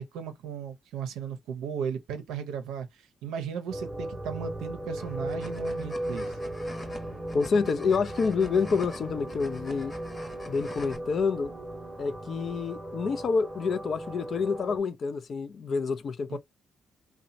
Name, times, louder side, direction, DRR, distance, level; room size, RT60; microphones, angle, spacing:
voice 1, 0.0-6.3 16.3-16.4, right 7 dB, 80° right, 0.5 m, -36 dB
sound 1, 3.7-14.8, right 1 dB, 15° right, 0.8 m, -37 dB
sound 2, 5.0-11.0, left 2 dB, 25° left, 0.9 m, -46 dB
voice 2, 7.3-9.9 10.5-11.5 12.0-16.4, left 5 dB, 55° left, 0.4 m, -28 dB
2.8 x 2.1 x 2.5 m
supercardioid pair, 55°, 0 cm